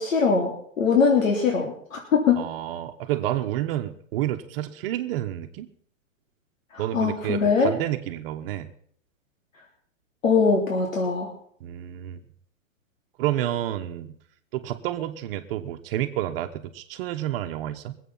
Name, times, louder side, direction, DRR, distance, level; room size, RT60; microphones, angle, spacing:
voice 1, 0.0-2.4 6.7-7.7 10.2-11.3, left 5 dB, 80° left, 1 dB, 3.4 m, -22 dB
voice 2, 2.4-5.7 6.8-8.7 11.6-12.2 13.2-14.2 14.5-18.0, right 13 dB, 45° right, 8 dB, 1.2 m, -29 dB
22.5 x 8.4 x 5.7 m, 0.63 s
hypercardioid pair, 135°, 39 cm